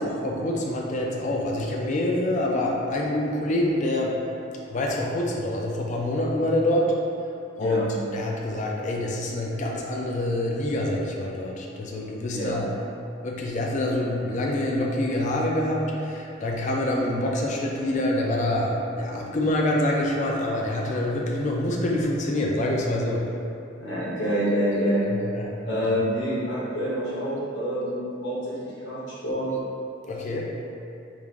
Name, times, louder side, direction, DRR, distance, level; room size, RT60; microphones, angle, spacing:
voice 1, 0.0-4.2 4.7-6.9 7.6-7.9 8.1-12.7 13.2-23.3 25.1-25.5 25.8-26.0 30.1-30.4, left 1 dB, 40° left, -1 dB, 0.4 m, -26 dB
voice 2, 23.8-25.0 25.6-29.5, equal, 70° left, -9 dB, 1.2 m, -27 dB
3.2 x 2.5 x 3.6 m, 2.6 s
head